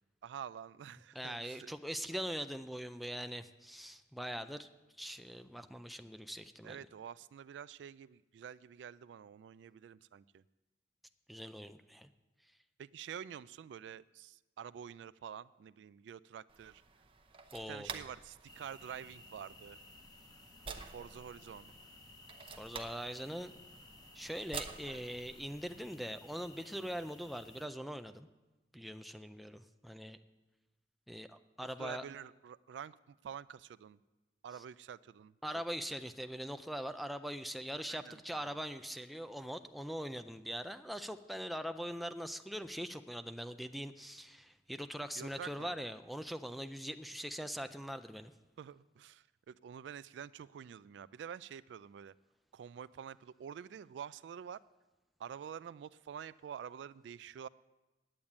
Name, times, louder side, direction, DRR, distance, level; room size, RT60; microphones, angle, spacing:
voice 1, 0.2-1.7 6.6-10.4 12.8-16.8 17.7-19.8 20.7-21.7 31.8-34.0 34.4-35.3 37.9-38.6 45.2-45.7 48.6-52.1 52.5-54.6 55.2-57.5, right 8 dB, 85° right, 17 dB, 0.3 m, -48 dB
voice 2, 1.1-4.7 5.0-6.8 11.3-12.1 17.5-18.0 22.6-23.5 24.1-28.3 28.7-30.2 31.1-32.0 35.4-48.3, equal, ahead, 8 dB, 0.4 m, -42 dB
sound 1, 16.5-25.8, right 5 dB, 30° right, 0.8 m, -50 dB
sound 2, 18.5-27.7, left 2 dB, 25° left, 1.1 m, -57 dB
8.8 x 8.7 x 9.5 m, 1.1 s
head